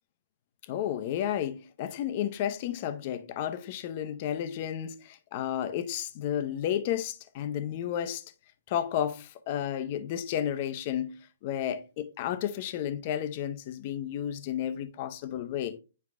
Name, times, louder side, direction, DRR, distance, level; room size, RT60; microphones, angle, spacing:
voice 1, 0.7-8.2 8.7-15.8, left 10 dB, 40° left, 0.7 m, -32 dB
9.5 x 4.7 x 2.4 m
hypercardioid pair, 140°, 0 cm